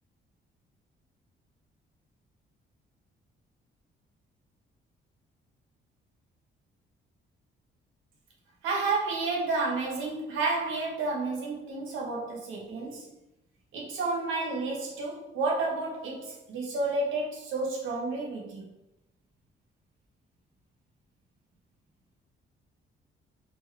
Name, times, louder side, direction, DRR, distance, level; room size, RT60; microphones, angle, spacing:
voice 1, 8.6-13.1 13.7-18.7, right 3 dB, 85° right, -1 dB, 1.1 m, -31 dB
4.3 x 3.1 x 3.3 m, 0.90 s
cardioid pair, 90°, 20 cm